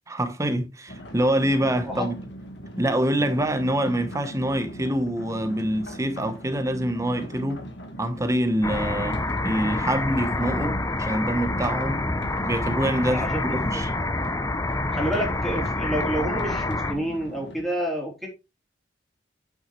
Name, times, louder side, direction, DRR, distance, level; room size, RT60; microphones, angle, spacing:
voice 1, 0.1-2.1 2.8-7.6 8.0-12.0 12.4-13.2 13.5-13.9, right 1 dB, 15° right, 0.9 m, -25 dB
sound 1, 0.9-17.6, equal, 65° left, 1.6 m, -40 dB
sound 2, 8.6-16.9, left 2 dB, 15° left, 0.6 m, -27 dB
voice 2, 13.1-13.8 14.9-18.3, equal, ahead, 3.1 m, -29 dB
8.7 x 6.2 x 3.1 m
head